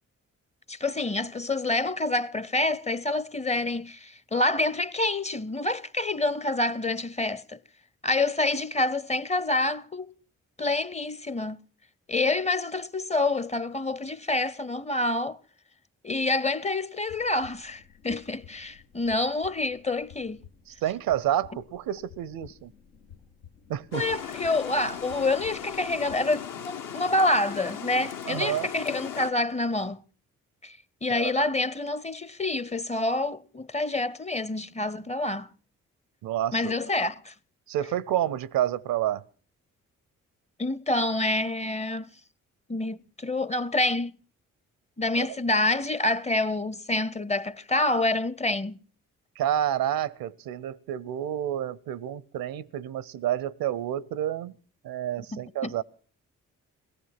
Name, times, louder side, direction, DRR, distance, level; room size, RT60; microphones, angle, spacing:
voice 1, 0.7-7.6 8.0-10.1 10.6-11.6 12.1-15.4 16.0-20.4 23.9-30.0 30.6-35.5 36.5-37.3 40.6-42.1 42.7-44.2 45.0-48.8 55.3-55.7, left 2 dB, 20° left, 0.7 m, -27 dB
sound 1, 17.1-26.2, left 8 dB, 85° left, 1.1 m, -53 dB
voice 2, 20.8-22.7 23.7-24.1 28.3-28.7 31.1-31.3 36.2-36.7 37.7-39.2 45.2-45.3 49.4-54.5 54.8-55.8, right 11 dB, 75° right, 0.7 m, -29 dB
Water, 23.9-29.3, left 8 dB, 60° left, 1.0 m, -38 dB
17.5 x 14.0 x 5.8 m
hypercardioid pair, 40°, 36 cm